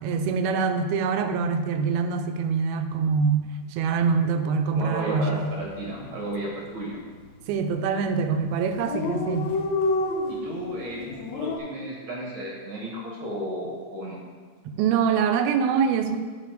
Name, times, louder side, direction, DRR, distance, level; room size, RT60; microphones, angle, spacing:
voice 1, 0.0-3.5 3.7-5.5 7.5-9.5 14.8-16.2, right 5 dB, 80° right, 7 dB, 2.5 m, -24 dB
voice 2, 4.7-7.0 10.3-14.2, right 1 dB, 55° right, -3 dB, 1.4 m, -33 dB
Dog, 5.4-5.6 5.9-6.0 6.2-6.9 7.6-7.8 8.1-8.2 8.4-8.5 8.6-11.6, left 2 dB, 90° left, 1.5 m, -28 dB
11.5 x 4.5 x 4.9 m, 1.5 s
omnidirectional pair, 4.4 m